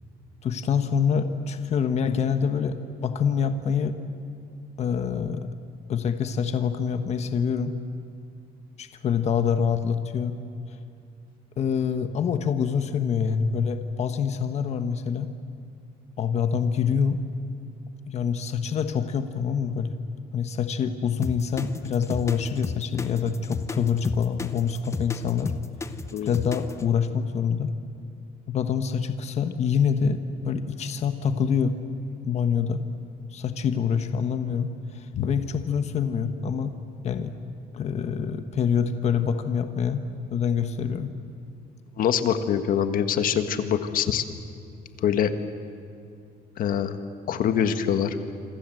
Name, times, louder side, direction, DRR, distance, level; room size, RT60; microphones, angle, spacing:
voice 1, 0.4-4.0 4.8-5.5 5.9-7.7 8.8-10.4 11.6-15.3 16.2-17.2 18.1-19.9 20.3-25.5 26.2-27.7 28.5-31.8 32.2-32.9 33.3-36.7 37.0-37.3 37.7-40.0 40.3-41.1, left 7 dB, 40° left, 8 dB, 1.3 m, -26 dB
sound 1, 21.2-26.9, left 4 dB, 15° left, 0.9 m, -33 dB
voice 2, 42.0-44.2 45.0-45.3 46.6-47.0 47.3-48.2, left 8 dB, 55° left, 8 dB, 1.6 m, -24 dB
27.0 x 26.0 x 7.8 m, 2.4 s
cardioid pair, 165°, 17 cm